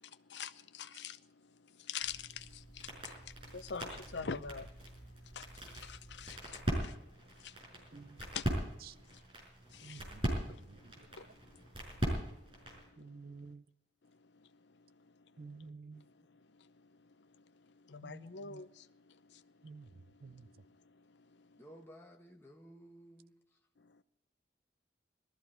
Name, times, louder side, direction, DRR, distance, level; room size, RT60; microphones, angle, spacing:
voice 1, 0.3-1.2 1.9-2.4 3.5-4.7 5.4-5.5 5.8-6.9 8.3-8.4 9.8-10.0 17.9-18.7, left 6 dB, 85° left, 0.7 m, -42 dB
sound 1, 2.0-12.9, right 1 dB, 30° right, 5.5 m, -41 dB
voice 2, 7.9-8.2 8.8-8.9 9.8-11.4 13.0-13.6 15.4-16.0 18.0-18.6 19.6-19.9 20.2-20.5, right 4 dB, 55° right, 0.5 m, -52 dB
voice 3, 21.6-23.3, equal, 15° left, 1.2 m, -55 dB
19.5 x 14.0 x 4.4 m
head